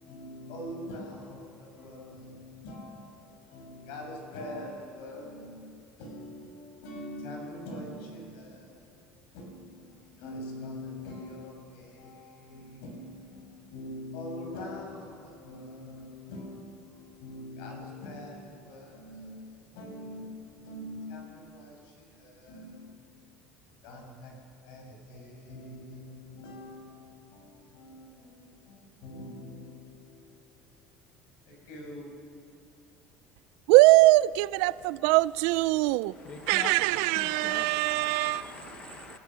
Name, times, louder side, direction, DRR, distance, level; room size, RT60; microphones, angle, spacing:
voice 1, 0.0-23.1 23.8-24.3 24.6-30.8 31.5-32.1, left 1 dB, 85° left, 6.5 m, -44 dB
voice 2, 33.7-36.2 36.5-38.4, right 19 dB, 75° right, 0.4 m, -22 dB
voice 3, 36.0-39.2, left 5 dB, 30° left, 0.9 m, -43 dB
29.5 x 15.5 x 6.3 m
cardioid pair, 180°, 4 cm